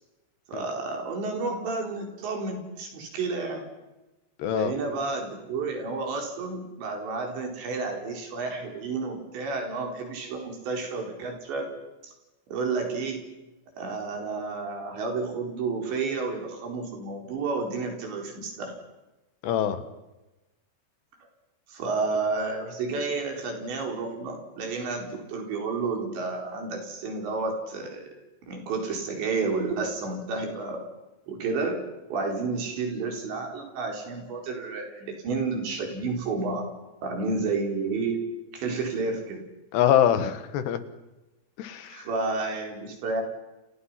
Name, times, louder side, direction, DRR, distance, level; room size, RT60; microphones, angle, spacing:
voice 1, 0.5-3.7 4.5-11.7 12.5-13.3 13.8-18.7 21.7-28.2 28.5-30.8 31.3-31.8 32.1-36.7 37.0-38.3 38.5-39.4 41.9-43.2, right 3 dB, 85° right, 3 dB, 6.7 m, -31 dB
voice 2, 4.4-4.7 19.4-19.8 39.7-40.8 41.6-41.9, left 10 dB, 75° left, 11 dB, 3.6 m, -23 dB
30.0 x 28.0 x 5.9 m, 1.0 s
omnidirectional pair, 5.0 m